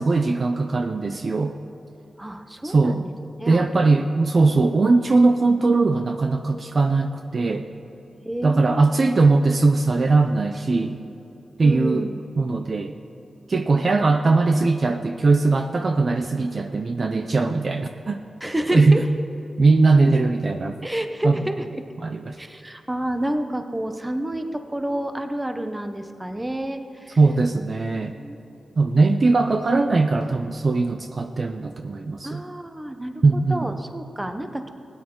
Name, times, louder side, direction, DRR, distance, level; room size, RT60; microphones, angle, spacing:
voice 1, 0.0-1.6 2.6-3.0 3.5-7.7 8.4-11.0 11.6-12.1 12.4-12.9 13.5-18.2 18.7-19.1 19.6-20.7 21.2-21.4 22.0-22.4 27.2-28.2 28.8-32.4 33.2-33.7, right 3 dB, 40° right, 6 dB, 0.5 m, -20 dB
voice 2, 2.2-3.1 3.4-3.9 8.2-8.9 11.6-12.3 18.4-19.0 20.8-21.8 22.4-27.2 28.2-28.4 29.2-29.3 32.2-34.7, right 1 dB, 10° right, 7 dB, 0.8 m, -29 dB
18.5 x 9.7 x 3.8 m, 2.9 s
wide cardioid pair, 135°, 0 cm